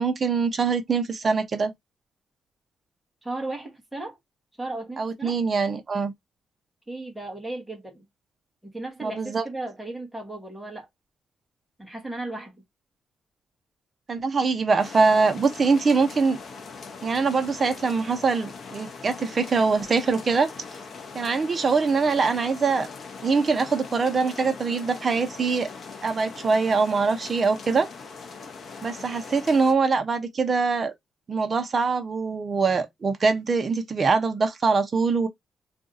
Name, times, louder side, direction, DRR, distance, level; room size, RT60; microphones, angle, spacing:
voice 1, 0.0-1.7 5.0-6.1 9.0-9.4 14.1-16.4 17.0-20.5 21.1-22.9 23.2-25.7 26.0-27.9 28.8-30.9 31.3-35.3, right 4 dB, 30° right, 0.7 m, -23 dB
voice 2, 3.2-4.2 4.6-5.4 6.9-8.0 8.6-10.9 11.8-12.6, right 2 dB, ahead, 1.0 m, -35 dB
sound 1, 14.8-29.7, left 5 dB, 45° left, 0.6 m, -41 dB
2.6 x 2.4 x 3.8 m
wide cardioid pair, 160°, 0 cm